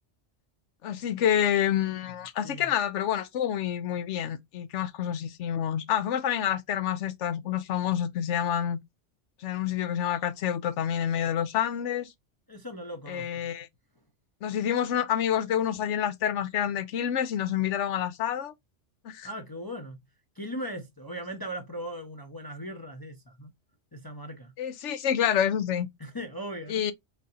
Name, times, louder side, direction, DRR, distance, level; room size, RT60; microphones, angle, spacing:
voice 1, 0.8-8.8 9.4-12.1 13.1-13.7 14.4-18.5 19.0-19.3 24.6-25.9 26.7-26.9, left 9 dB, 80° left, 1.0 m, -28 dB
voice 2, 12.5-13.5 19.2-20.0 20.4-23.5 23.9-24.5 26.0-26.8, equal, 25° left, 0.5 m, -38 dB
3.8 x 3.7 x 2.7 m
omnidirectional pair, 1.2 m